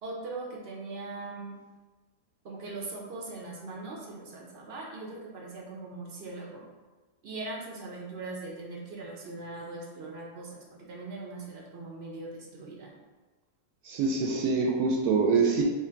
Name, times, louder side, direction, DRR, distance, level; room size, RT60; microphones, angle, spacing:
voice 1, 0.0-1.6 2.4-6.7 7.2-12.9, right 3 dB, 55° right, -2 dB, 0.8 m, -40 dB
voice 2, 13.8-15.6, right 4 dB, 80° right, 0 dB, 1.1 m, -25 dB
3.2 x 2.5 x 4.3 m, 1.3 s
omnidirectional pair, 1.6 m